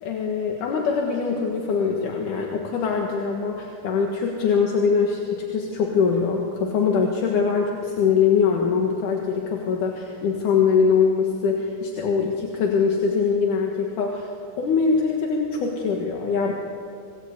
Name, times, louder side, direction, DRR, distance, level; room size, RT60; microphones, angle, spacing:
voice 1, 0.0-16.5, left 5 dB, 75° left, 0 dB, 3.2 m, -23 dB
26.5 x 19.5 x 8.2 m, 2.6 s
omnidirectional pair, 3.6 m